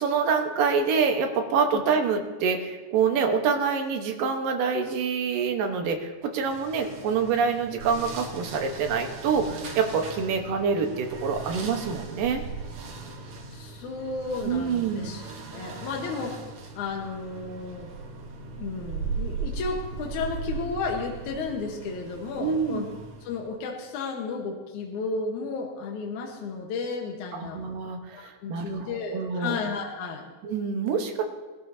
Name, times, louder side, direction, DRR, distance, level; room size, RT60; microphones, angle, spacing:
voice 1, 0.0-12.4 14.4-15.1 22.4-22.9 27.3-29.6 30.4-31.2, right 5 dB, 75° right, 4 dB, 2.8 m, -26 dB
sound 1, 6.4-23.5, right 5 dB, 55° right, 1.7 m, -38 dB
voice 2, 13.5-15.2 15.5-16.4 16.7-18.0 18.5-22.8 23.2-27.6 28.1-30.3, left 4 dB, 65° left, 1 dB, 2.4 m, -33 dB
20.5 x 12.5 x 2.7 m, 1.3 s
omnidirectional pair, 4.0 m